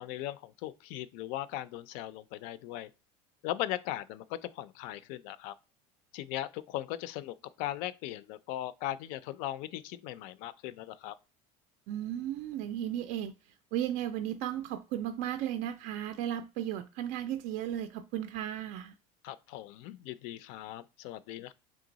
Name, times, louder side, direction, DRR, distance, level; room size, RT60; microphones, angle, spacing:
voice 1, 0.0-2.9 3.4-5.5 6.1-11.1 19.2-21.5, left 14 dB, 65° left, 0.4 m, -38 dB
voice 2, 11.9-13.3 13.7-18.9, right 11 dB, 60° right, 0.4 m, -35 dB
3.7 x 3.3 x 3.9 m
cardioid pair, 150°, 15 cm